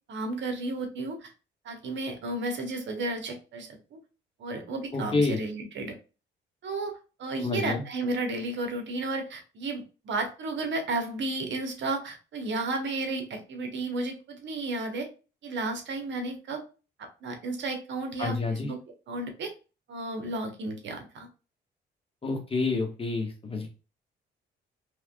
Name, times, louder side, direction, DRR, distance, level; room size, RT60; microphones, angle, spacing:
voice 1, 0.1-1.3 1.6-4.0 4.4-5.9 6.6-15.1 15.4-16.6 17.0-18.8 19.1-19.5 19.9-21.3, right 2 dB, 65° right, 5 dB, 1.2 m, -33 dB
voice 2, 4.9-5.4 7.4-7.8 18.2-18.7 22.2-23.7, left 3 dB, 30° left, 2 dB, 1.3 m, -28 dB
3.5 x 3.3 x 2.2 m, 0.33 s
cardioid pair, 90°, 20 cm